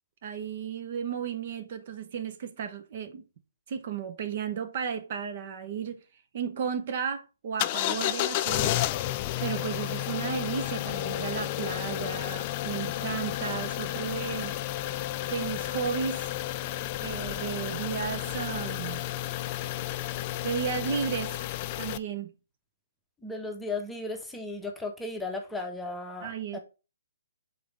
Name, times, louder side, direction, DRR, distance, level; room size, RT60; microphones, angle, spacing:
voice 1, 0.2-3.2 3.7-6.0 6.3-8.8 9.4-14.5 15.3-16.3 17.0-19.0 20.4-21.4 21.8-22.3 26.2-26.6, right 7 dB, 45° right, 0.8 m, -34 dB
sound 1, 7.6-22.0, left 14 dB, 35° left, 0.3 m, -32 dB
voice 2, 23.2-26.6, left 3 dB, 5° left, 0.9 m, -35 dB
5.0 x 4.0 x 4.9 m
figure-of-eight pair, 135°, 0 cm